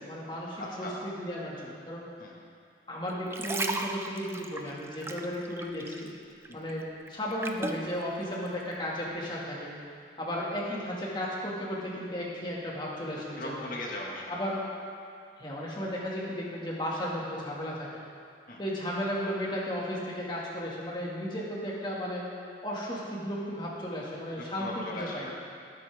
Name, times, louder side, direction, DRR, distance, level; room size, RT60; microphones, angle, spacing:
voice 1, 0.0-2.0 2.9-6.1 6.5-9.7 10.2-13.6 14.3-14.6 15.4-17.9 18.6-22.2 22.6-25.3, equal, 25° left, -5 dB, 2.1 m, -34 dB
voice 2, 0.6-1.0 2.2-2.3 6.5-6.7 10.4-10.5 13.4-14.4 18.5-18.6 24.6-25.3, left 1 dB, 50° left, -3 dB, 1.8 m, -38 dB
sound 1, 3.1-6.2 6.4-7.9 8.5-8.6, right 2 dB, 15° right, 0.5 m, -35 dB
18.5 x 8.8 x 3.6 m, 2.3 s
head